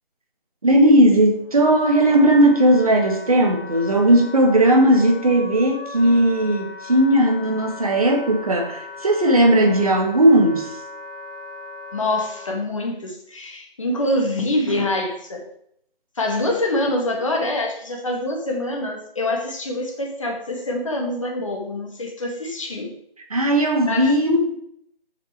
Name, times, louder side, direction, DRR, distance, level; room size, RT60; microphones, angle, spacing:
voice 1, 0.6-10.7 23.3-24.6, right 1 dB, 40° right, 2 dB, 1.5 m, -17 dB
Wind instrument woodwind instrument, 1.0-12.6, left 4 dB, 65° left, 3.1 m, -38 dB
voice 2, 11.9-15.5 16.2-22.9 23.9-24.2, left 1 dB, 35° left, 1 dB, 1.7 m, -25 dB
6.8 x 6.7 x 4.6 m, 0.69 s
figure-of-eight pair, 160°, 30 cm